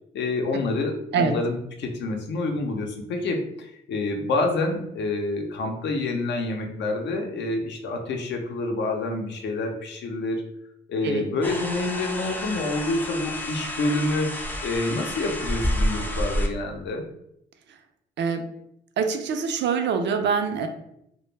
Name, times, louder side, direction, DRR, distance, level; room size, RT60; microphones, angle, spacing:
voice 1, 0.1-10.4 10.9-14.3 14.6-17.0, left 2 dB, 65° left, 3 dB, 0.5 m, -27 dB
sound 1, 11.4-16.5, equal, 10° left, 0.3 m, -29 dB
voice 2, 19.0-20.7, right 6 dB, 65° right, 6 dB, 0.4 m, -24 dB
2.1 x 2.0 x 3.1 m, 0.78 s
cardioid pair, 90°, 20 cm